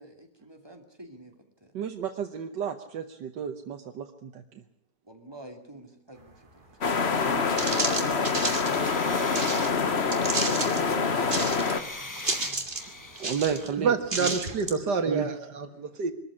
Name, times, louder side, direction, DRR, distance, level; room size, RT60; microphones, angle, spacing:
voice 1, 0.0-1.4 1.6-1.7 5.0-8.1, right 1 dB, 15° right, 4 dB, 2.6 m, -50 dB
voice 2, 1.7-4.4 9.1-9.4 10.5-11.0 12.2-12.3 13.2-13.9 14.2-14.4 15.1-15.3, right 8 dB, 90° right, 5 dB, 1.8 m, -33 dB
sound 1, 6.8-11.8, left 5 dB, 40° left, 1.5 m, -26 dB
sound 2, 7.1-7.2 7.6-9.7 10.1-10.8 11.2-11.8 12.1-12.9 13.2-13.7 14.1-14.8, right 2 dB, 30° right, 2.5 m, -31 dB
sound 3, 8.6-13.7, left 2 dB, 15° left, 0.7 m, -43 dB
voice 3, 10.8-11.3 13.8-16.1, right 5 dB, 70° right, 8 dB, 2.4 m, -28 dB
23.0 x 14.0 x 9.8 m, 0.71 s
omnidirectional pair, 1.8 m